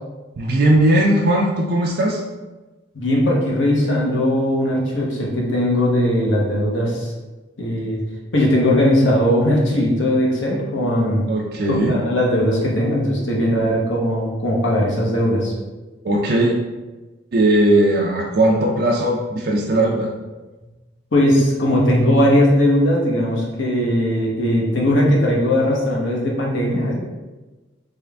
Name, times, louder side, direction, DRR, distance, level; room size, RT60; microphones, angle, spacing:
voice 1, 0.4-2.2 11.3-12.0 16.0-16.6 17.3-20.1, right 1 dB, 50° right, -2 dB, 0.4 m, -18 dB
voice 2, 2.9-7.1 7.6-8.0 8.3-11.3 11.7-15.5 21.1-26.9, left 1 dB, 70° left, -3 dB, 0.9 m, -19 dB
3.7 x 2.4 x 3.3 m, 1.2 s
head